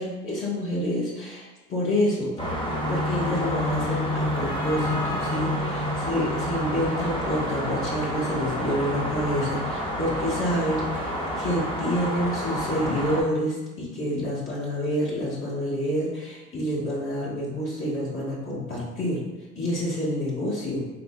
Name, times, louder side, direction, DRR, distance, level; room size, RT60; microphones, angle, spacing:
voice 1, 0.0-2.3 2.9-11.1 11.4-19.2 19.5-20.8, equal, 45° left, -6 dB, 1.4 m, -28 dB
sound 1, 2.4-13.2, equal, 15° left, 0.9 m, -28 dB
4.0 x 2.8 x 2.3 m, 1.2 s
supercardioid pair, 75°, 29 cm